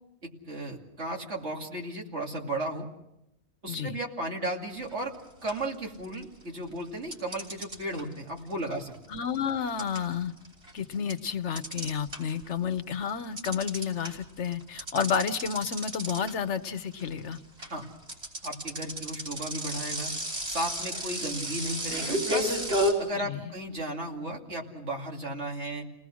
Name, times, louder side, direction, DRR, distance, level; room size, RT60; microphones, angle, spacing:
voice 1, 0.2-2.9 3.6-5.1 5.4-8.9 17.7-17.9 18.4-20.1 20.5-22.6 23.0-25.8, right 1 dB, 80° right, 0 dB, 3.0 m, -35 dB
voice 2, 3.7-4.0 9.1-10.3 10.7-17.4 23.1-23.5, left 7 dB, 85° left, 11 dB, 1.3 m, -31 dB
sound 1, 4.9-5.1 5.5-6.4 7.1-12.5 12.8-22.9, equal, 60° right, 4.1 m, -33 dB
29.5 x 19.0 x 6.3 m, 0.86 s
omnidirectional pair, 1.2 m